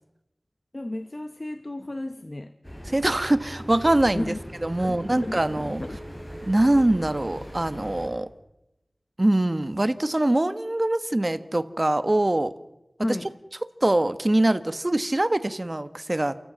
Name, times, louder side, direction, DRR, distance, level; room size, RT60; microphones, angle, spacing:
voice 1, 0.7-2.5 4.1-4.4 4.8-6.0 13.0-13.3, left 1 dB, 45° left, 10 dB, 1.0 m, -33 dB
sound 1, 2.6-8.1, equal, 20° left, 7.3 m, -39 dB
voice 2, 2.9-4.3 4.6-5.8 6.4-8.3 9.2-12.5 13.8-16.3, right 1 dB, 40° right, 11 dB, 1.3 m, -23 dB
29.0 x 14.5 x 7.4 m, 0.90 s
wide cardioid pair, 45°, 0 cm